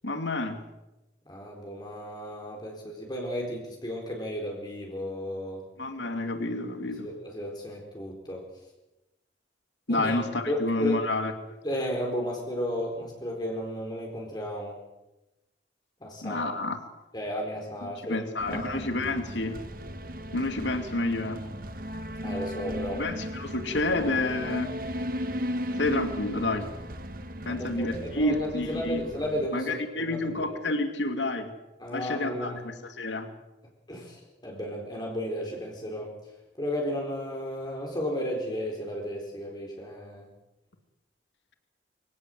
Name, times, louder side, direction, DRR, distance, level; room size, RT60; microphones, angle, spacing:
voice 1, 0.0-0.6 5.8-7.1 9.9-11.6 16.2-16.8 17.8-19.6 20.3-21.4 22.9-24.7 25.8-26.7 27.5-29.0 29.5-31.5 31.9-33.3, left 2 dB, 80° left, 7 dB, 2.6 m, -29 dB
voice 2, 1.3-5.6 7.0-8.4 9.9-10.2 10.5-11.0 11.6-14.8 16.0-16.5 17.1-18.9 22.2-23.0 27.5-30.6 31.8-32.6 33.9-36.1 36.6-40.3, equal, 25° left, -1 dB, 4.3 m, -34 dB
sound 1, 18.4-29.5, equal, 50° right, 1.7 m, -36 dB
25.0 x 17.0 x 7.9 m, 0.97 s
head